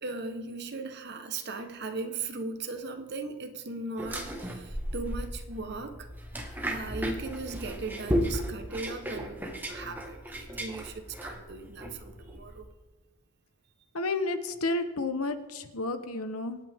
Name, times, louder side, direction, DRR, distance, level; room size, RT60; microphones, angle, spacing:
voice 1, 0.0-6.1 6.6-12.7, right 3 dB, 50° right, 7 dB, 1.2 m, -38 dB
sound 1, 4.0-12.6, equal, 10° right, 1.5 m, -35 dB
voice 2, 13.9-16.6, left 2 dB, 85° left, 10 dB, 1.1 m, -31 dB
26.0 x 9.2 x 3.6 m, 1.2 s
head